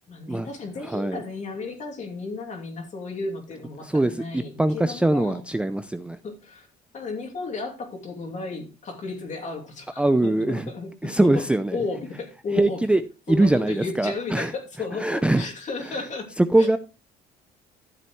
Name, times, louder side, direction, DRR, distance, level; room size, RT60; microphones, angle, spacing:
voice 1, 0.1-5.4 6.2-6.7 6.9-11.4 11.7-12.8 13.3-16.3 16.6-16.7, left 3 dB, 45° left, 2.7 m, -34 dB
voice 2, 0.8-1.2 3.8-6.2 10.0-10.7 11.0-11.8 12.6-13.0 13.3-14.5 15.0-15.5 15.9-16.0 16.4-16.8, right 1 dB, 5° right, 0.5 m, -22 dB
12.5 x 7.5 x 3.1 m
cardioid pair, 110°, 17 cm